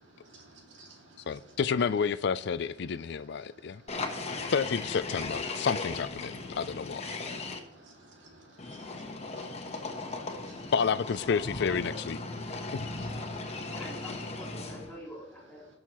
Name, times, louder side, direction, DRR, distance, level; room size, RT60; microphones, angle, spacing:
voice 1, 0.2-1.3 3.5-4.5 7.1-10.7 12.5-13.6, right 2 dB, 70° right, 2.5 m, -56 dB
voice 2, 1.3-3.8 4.5-7.0 10.7-12.2 12.7-12.9, left 6 dB, 60° left, 0.4 m, -30 dB
sound 1, 3.9-7.6 8.6-15.0, left 3 dB, 35° left, 1.1 m, -37 dB
voice 3, 11.6-12.0 13.7-15.7, equal, 5° left, 4.1 m, -45 dB
18.5 x 6.4 x 3.0 m
head